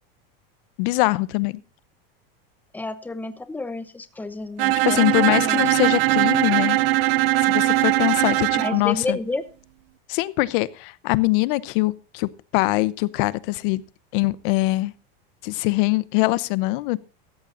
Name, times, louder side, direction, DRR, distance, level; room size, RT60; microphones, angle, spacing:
voice 1, 0.8-1.6 4.8-6.8 7.4-9.2 10.1-13.8 14.1-14.9 15.4-17.0, left 21 dB, 60° left, 0.9 m, -23 dB
voice 2, 2.7-5.6 8.5-9.4, left 2 dB, 5° left, 1.0 m, -30 dB
Bowed string instrument, 4.6-8.8, right 17 dB, 75° right, 0.7 m, -20 dB
16.5 x 14.0 x 2.6 m
supercardioid pair, 140°, 30 cm